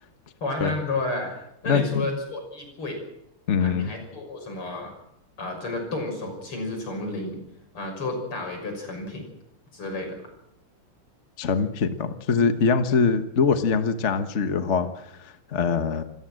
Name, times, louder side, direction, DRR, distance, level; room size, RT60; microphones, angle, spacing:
voice 1, 0.4-1.3 1.6-3.0 3.6-4.9 5.4-7.4 7.7-9.2 9.7-10.2, left 2 dB, 75° left, 3 dB, 7.1 m, -31 dB
voice 2, 1.7-2.0 3.5-3.9 11.4-16.0, left 5 dB, 40° left, 9 dB, 1.3 m, -23 dB
27.5 x 14.5 x 7.6 m, 0.79 s
omnidirectional pair, 2.4 m